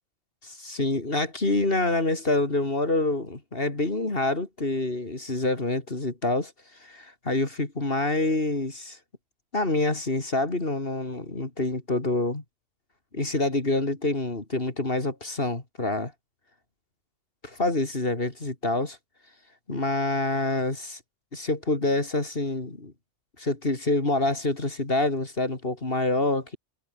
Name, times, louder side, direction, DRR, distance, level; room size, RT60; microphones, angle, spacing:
voice 1, 0.4-6.5 6.8-9.0 9.5-12.4 13.1-16.1 17.4-19.0 19.7-21.0 21.3-22.9 23.4-26.6, left 2 dB, 60° left, 3.5 m, -27 dB
omnidirectional pair, 1.1 m